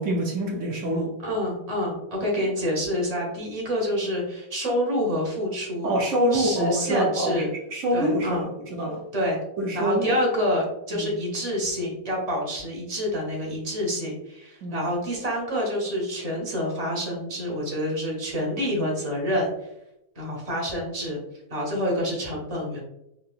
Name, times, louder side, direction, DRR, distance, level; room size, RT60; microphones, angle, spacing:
voice 1, 0.0-1.1 2.4-2.5 5.8-9.0 9.6-10.1 10.9-11.1 14.6-14.8, right 1 dB, 65° right, 0 dB, 0.7 m, -26 dB
voice 2, 1.2-5.9 6.3-7.5 7.9-8.4 9.1-9.4 9.7-19.5 20.1-21.2 21.5-22.8, equal, 30° right, -2 dB, 0.8 m, -27 dB
3.7 x 2.7 x 2.3 m, 0.85 s
omnidirectional pair, 1.8 m